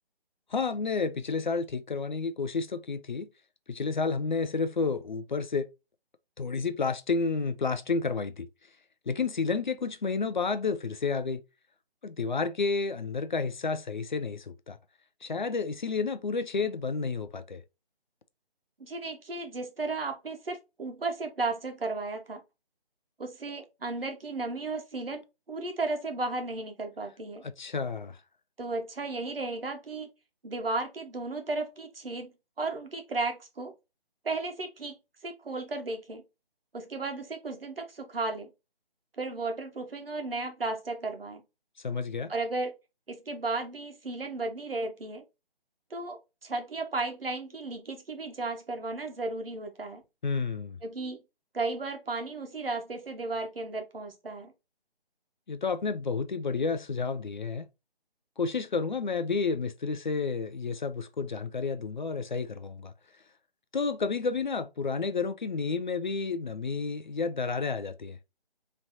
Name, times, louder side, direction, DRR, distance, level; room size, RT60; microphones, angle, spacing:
voice 1, 0.5-3.3 3.7-5.7 6.4-8.5 9.1-11.4 12.0-14.8 15.2-17.6 27.4-28.2 41.8-42.3 50.2-50.8 55.5-57.7 58.4-62.9 63.7-68.2, left 4 dB, 50° left, 0.5 m, -30 dB
voice 2, 18.8-22.4 23.2-27.4 28.6-30.1 30.4-33.7 34.2-34.9 35.2-36.2 36.7-38.5 39.2-41.4 42.3-42.7 43.1-45.2 45.9-50.0 50.8-51.2 51.5-54.5, right 3 dB, 70° right, 1.3 m, -34 dB
3.9 x 3.2 x 2.7 m
figure-of-eight pair, 150°, 30 cm